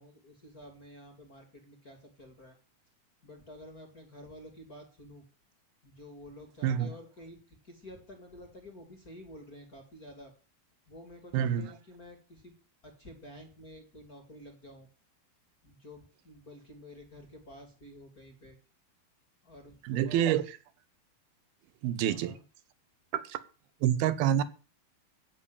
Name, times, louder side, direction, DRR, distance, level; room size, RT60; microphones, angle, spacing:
voice 1, 0.0-2.6 3.2-5.2 5.8-10.3 10.9-12.5 12.8-14.9 15.6-18.6 19.4-20.4 22.0-22.4, left 1 dB, 30° left, 2.0 m, -50 dB
voice 2, 11.3-11.7 19.8-20.5 21.8-22.3 23.1-23.4 23.8-24.4, right 10 dB, 75° right, 2.6 m, -27 dB
14.5 x 6.0 x 8.7 m
omnidirectional pair, 4.5 m